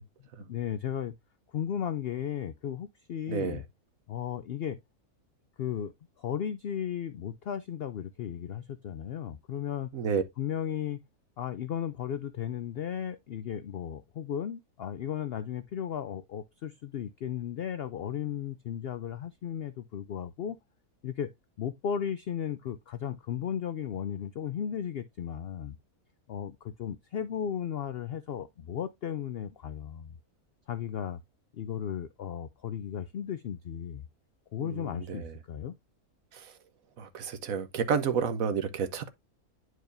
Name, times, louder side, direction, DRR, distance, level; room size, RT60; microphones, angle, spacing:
voice 1, 0.5-1.1 1.5-3.6 4.1-4.8 5.6-9.9 10.4-11.0 11.4-20.6 21.0-21.3 21.6-25.8 26.3-30.2 30.7-31.2 31.5-34.0 34.5-35.8, left 9 dB, 70° left, 0.5 m, -35 dB
voice 2, 3.3-3.6 9.9-10.2 34.6-35.3 36.3-36.5 37.0-39.1, right 6 dB, 65° right, 1.3 m, -30 dB
10.5 x 4.7 x 2.5 m
omnidirectional pair, 1.6 m